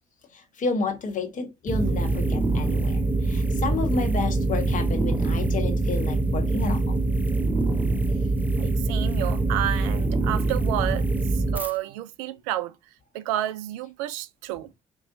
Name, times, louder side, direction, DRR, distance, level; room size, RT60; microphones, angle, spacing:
voice 1, 0.3-6.8, left 4 dB, 45° left, 1.0 m, -30 dB
sound 1, 1.7-11.7, right 2 dB, 10° right, 0.7 m, -24 dB
voice 2, 8.5-11.1 11.3-12.8 13.1-14.7, right 13 dB, 70° right, 0.4 m, -30 dB
4.5 x 2.6 x 2.6 m
figure-of-eight pair, 45°, 18 cm